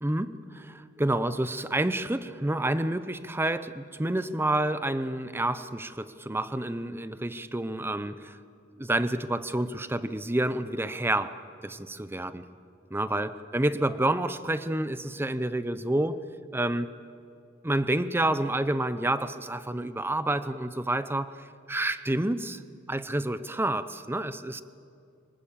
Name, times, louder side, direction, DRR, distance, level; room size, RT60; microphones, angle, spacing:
voice 1, 0.0-8.4 8.8-11.4 11.6-12.5 12.9-16.2 16.5-16.9 17.6-22.6 22.9-24.6, right 1 dB, 10° right, 13 dB, 0.6 m, -29 dB
25.5 x 19.0 x 7.4 m, 2.4 s
head